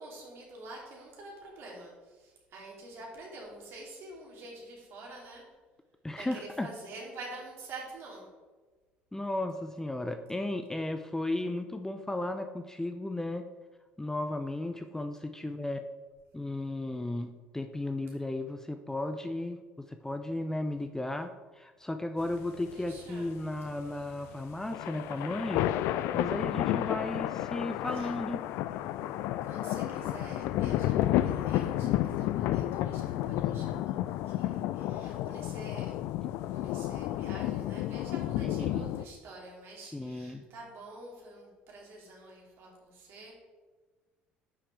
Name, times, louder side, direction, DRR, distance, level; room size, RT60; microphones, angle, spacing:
voice 1, 0.0-5.4 6.2-8.3 22.5-23.3 27.9-28.1 29.5-34.0 34.3-35.9 36.5-43.3, right 2 dB, 55° right, -2 dB, 2.6 m, -47 dB
voice 2, 6.0-6.7 9.1-13.5 14.0-15.8 16.3-28.4 38.4-38.9 39.9-40.4, left 2 dB, 10° left, 7 dB, 0.6 m, -35 dB
sound 1, 22.2-39.0, left 13 dB, 60° left, 0.3 m, -31 dB
9.7 x 5.8 x 3.2 m, 1.3 s
figure-of-eight pair, 60°, 5 cm